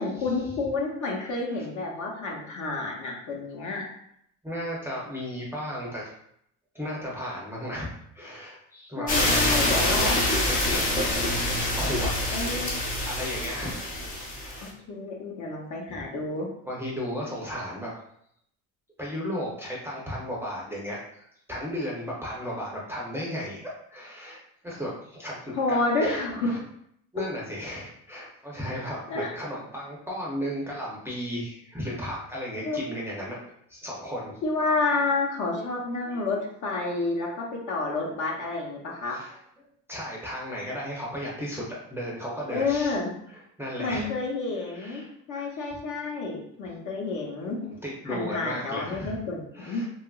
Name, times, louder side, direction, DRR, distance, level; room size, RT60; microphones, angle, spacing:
voice 1, 0.0-3.9 8.9-10.1 12.3-12.7 14.6-16.5 25.5-26.6 29.1-29.3 32.6-32.8 34.4-39.2 42.5-43.1 43.8-47.6 48.1-49.8, left 3 dB, 55° left, 0 dB, 0.8 m, -29 dB
voice 2, 1.1-1.6 4.4-6.1 6.7-7.9 8.1-10.2 10.5-10.8 11.7-12.1 13.0-13.9 14.4-14.7 15.9-16.0 16.6-17.9 19.0-26.6 27.1-33.4 33.7-34.4 35.6-35.7 36.0-36.4 39.0-39.4 39.9-43.0 43.3-44.1 44.5-45.1 45.4-45.7 47.8-49.2 49.5-49.9, equal, 5° right, -5 dB, 0.5 m, -35 dB
sound 1, 9.1-14.7, left 1 dB, 25° left, 0.7 m, -26 dB
2.9 x 2.3 x 2.3 m, 0.71 s
cardioid pair, 125°, 35 cm